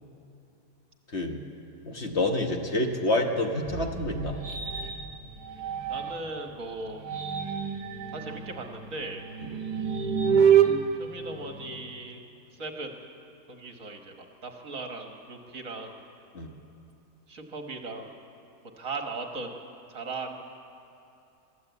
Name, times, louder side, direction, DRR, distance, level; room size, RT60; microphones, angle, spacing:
voice 1, 1.9-4.4 16.3-16.5, left 1 dB, 45° left, 3 dB, 1.5 m, -27 dB
sound 1, 3.2-6.4 6.9-12.1, right 7 dB, 75° right, 1.6 m, -28 dB
sound 2, 3.6-11.0, right 2 dB, ahead, 2.0 m, -46 dB
voice 2, 5.9-7.0 8.1-9.2 11.0-12.2 12.6-12.9 13.5-16.0 17.3-18.2 18.8-19.6 19.9-20.4, right 3 dB, 55° right, 3 dB, 1.9 m, -38 dB
23.0 x 14.0 x 8.2 m, 2.8 s
omnidirectional pair, 1.7 m